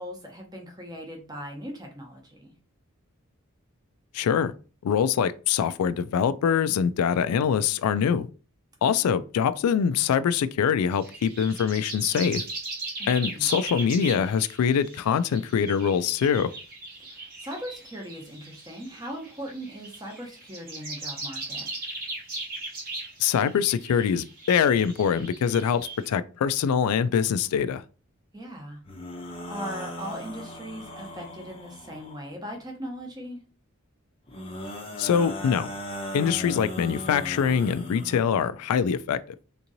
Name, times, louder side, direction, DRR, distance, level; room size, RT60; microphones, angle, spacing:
voice 1, 0.0-2.5 9.0-9.2 13.0-13.5 17.0-21.7 28.3-28.8 29.1-33.4, equal, 15° right, 0.8 m, -39 dB
voice 2, 4.1-4.5 4.8-8.3 8.8-12.4 13.1-16.5 23.2-27.8 35.0-35.7 36.1-39.2, left 7 dB, 85° left, 0.3 m, -24 dB
sound 1, 10.9-26.1, right 2 dB, 40° right, 0.9 m, -38 dB
sound 2, 28.9-32.3 34.3-38.2, left 1 dB, 25° left, 0.6 m, -37 dB
3.6 x 2.9 x 2.6 m
head